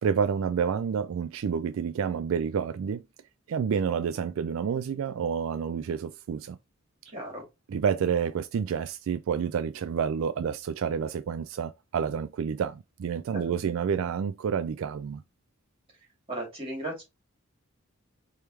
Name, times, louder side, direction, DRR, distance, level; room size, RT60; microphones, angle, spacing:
voice 1, 0.0-3.0 3.5-6.6 7.7-15.2, right 7 dB, 75° right, 0.3 m, -29 dB
voice 2, 7.1-7.4 13.3-13.7 16.3-17.0, right 1 dB, 25° right, 2.7 m, -36 dB
4.5 x 3.5 x 3.2 m
head